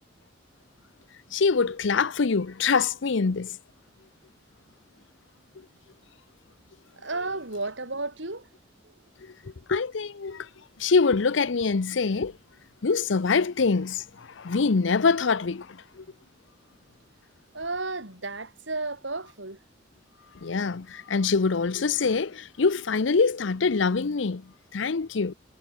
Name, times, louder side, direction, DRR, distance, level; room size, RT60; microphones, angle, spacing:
voice 1, 1.3-3.6 9.2-9.3 9.7-10.5 10.8-12.4 12.8-16.0 20.4-25.3, left 4 dB, 75° left, 0.7 m, -24 dB
voice 2, 7.0-8.5 8.8-8.9 17.5-19.6, right 3 dB, 75° right, 4.9 m, -33 dB
head